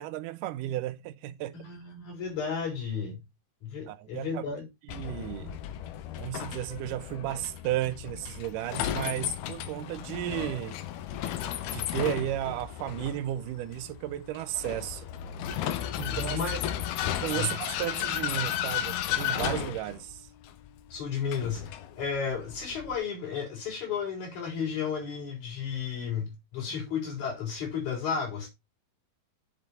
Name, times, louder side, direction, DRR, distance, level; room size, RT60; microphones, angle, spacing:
voice 1, 0.0-1.7 3.9-4.4 4.9-5.6 6.2-10.8 11.7-15.1 16.0-16.4 17.2-20.3, right 13 dB, 80° right, 2.0 m, -34 dB
voice 2, 1.5-3.2 3.6-4.6 15.9-16.6 17.3-17.6 20.9-28.5, left 6 dB, 50° left, 5.3 m, -33 dB
Vehicle, 4.9-23.0, left 11 dB, 90° left, 2.9 m, -34 dB
7.9 x 7.1 x 4.2 m
omnidirectional pair, 4.4 m